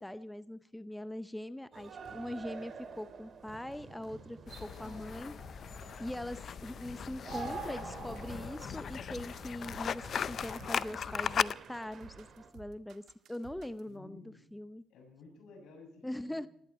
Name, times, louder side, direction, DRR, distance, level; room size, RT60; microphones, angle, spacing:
voice 1, 0.0-5.4 6.0-14.8 16.0-16.5, left 1 dB, 5° left, 14 dB, 0.7 m, -42 dB
sound 1, 1.7-12.5, right 5 dB, 55° right, 2.2 m, -48 dB
sound 2, 4.5-11.5, left 7 dB, 55° left, 0.5 m, -38 dB
sound 3, 8.3-13.9, right 9 dB, 75° right, 1.5 m, -55 dB
voice 2, 13.9-14.4 14.9-16.5, left 3 dB, 85° left, 3 dB, 6.9 m, -54 dB
19.5 x 14.5 x 4.3 m, 0.71 s
cardioid pair, 90°, 0 cm